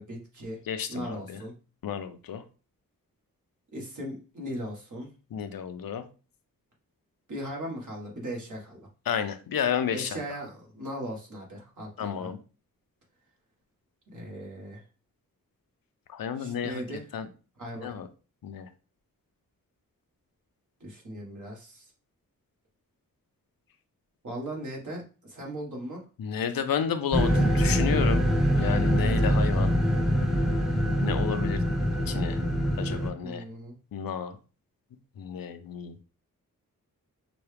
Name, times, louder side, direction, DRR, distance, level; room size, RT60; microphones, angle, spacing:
voice 1, 0.0-0.6 0.9-1.5 3.7-5.1 7.3-8.9 9.9-12.3 14.1-14.8 16.4-17.1 17.6-18.0 20.8-21.9 24.2-26.0 33.2-33.8, equal, 60° right, -1 dB, 1.7 m, -38 dB
voice 2, 0.7-1.4 1.8-2.4 5.3-6.0 9.1-10.2 12.0-12.4 16.1-16.8 17.1-17.3 17.8-18.1 18.4-18.7 26.2-29.7 31.0-31.6 32.1-32.4 32.8-33.4 33.9-34.4 35.2-36.0, left 8 dB, 85° left, 9 dB, 0.6 m, -31 dB
sound 1, 27.1-33.1, equal, ahead, 0.8 m, -24 dB
5.9 x 2.3 x 3.3 m, 0.35 s
wide cardioid pair, 100°, 34 cm